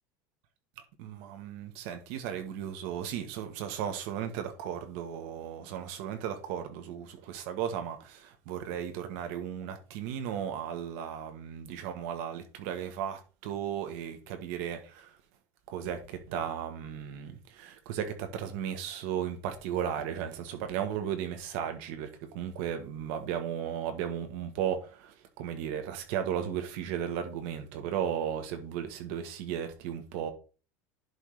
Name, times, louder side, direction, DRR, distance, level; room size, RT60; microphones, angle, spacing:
voice 1, 1.0-15.2 15.7-30.3, right 9 dB, 60° right, 1.5 m, -35 dB
11.0 x 3.7 x 4.9 m
supercardioid pair, 160°, 8 cm